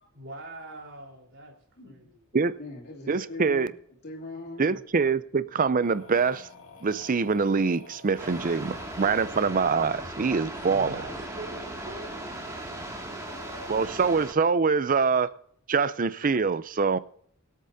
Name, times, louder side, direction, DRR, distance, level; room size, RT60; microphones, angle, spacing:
voice 1, 0.1-1.5 1.8-2.2 10.5-12.3, right 1 dB, 55° right, 3.9 m, -43 dB
voice 2, 2.3-3.7 4.0-4.8, left 2 dB, 50° left, 3.0 m, -41 dB
voice 3, 3.1-3.7 4.6-6.5 6.8-11.0 13.7-15.3 15.7-17.0, right 5 dB, 40° right, 0.5 m, -24 dB
sound 1, 5.8-9.9 13.0-14.2, left 2 dB, 70° left, 2.0 m, -49 dB
sound 2, 8.2-14.3, right 1 dB, 15° right, 2.2 m, -38 dB
24.0 x 8.4 x 2.7 m
head